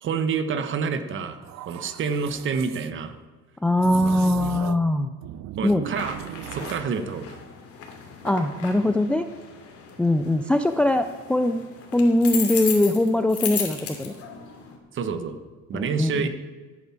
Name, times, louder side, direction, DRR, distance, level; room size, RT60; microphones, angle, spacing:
voice 1, 0.0-1.4 1.6-3.2 4.0-4.2 5.6-6.2 6.5-7.4 14.9-15.4 15.7-16.3, right 5 dB, 40° right, 10 dB, 1.2 m, -28 dB
sound 1, 1.4-2.9 3.8-4.9 5.2-6.9, right 12 dB, 65° right, 0.7 m, -37 dB
voice 2, 3.6-5.1 5.6-5.8 8.2-9.3 10.0-11.6 11.9-14.1 15.7-16.3, left 1 dB, 5° left, 9 dB, 0.3 m, -21 dB
sound 2, 5.9-14.8, left 7 dB, 50° left, 2.6 m, -36 dB
13.5 x 8.8 x 7.3 m, 1.3 s
cardioid pair, 155°, 30 cm